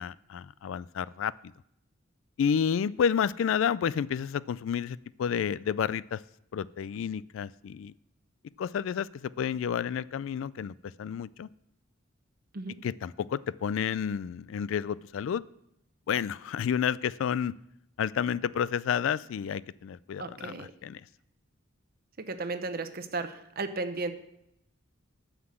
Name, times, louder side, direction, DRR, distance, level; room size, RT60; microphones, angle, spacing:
voice 1, 0.0-1.3 2.4-6.2 6.5-7.9 8.6-11.5 12.8-15.4 16.1-17.5 18.0-21.0, left 7 dB, 75° left, 20 dB, 0.3 m, -30 dB
voice 2, 20.2-20.7 22.2-24.1, right 3 dB, 50° right, 9 dB, 0.8 m, -34 dB
9.5 x 5.8 x 7.6 m, 0.81 s
head